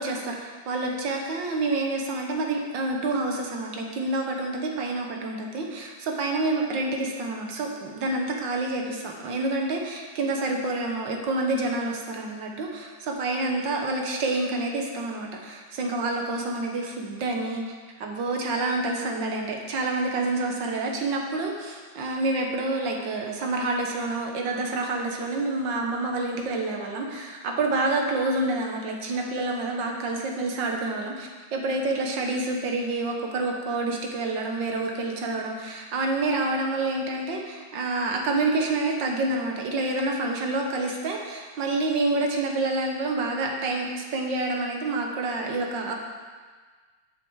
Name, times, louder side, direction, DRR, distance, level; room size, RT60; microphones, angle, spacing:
voice 1, 0.0-17.7 18.0-46.0, right 2 dB, 70° right, 1 dB, 1.8 m, -28 dB
10.5 x 5.9 x 4.7 m, 1.5 s
omnidirectional pair, 2.1 m